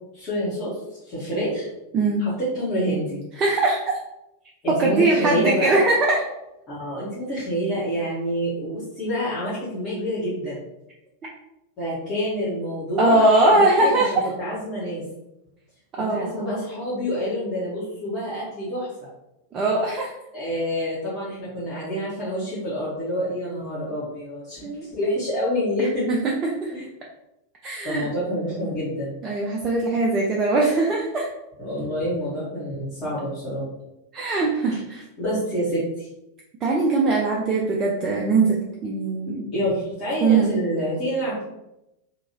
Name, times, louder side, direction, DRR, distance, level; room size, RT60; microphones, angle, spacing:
voice 1, 0.1-0.7 1.0-1.7 2.2-3.2 4.6-5.8 6.7-10.6 11.8-15.0 16.0-18.9 20.3-26.0 26.7-26.8 27.8-29.1 31.6-33.6 34.7-34.8 35.2-36.1 39.5-41.4, equal, 30° left, -11 dB, 1.2 m, -27 dB
voice 2, 3.4-3.8 4.7-6.2 13.0-14.3 15.9-16.6 19.5-20.1 24.6-24.9 25.8-26.7 27.6-28.1 29.2-31.3 34.1-35.0 36.6-39.4 40.2-40.6, right 2 dB, 25° right, -2 dB, 0.4 m, -21 dB
2.8 x 2.6 x 2.8 m, 0.90 s
figure-of-eight pair, 90°, 0 cm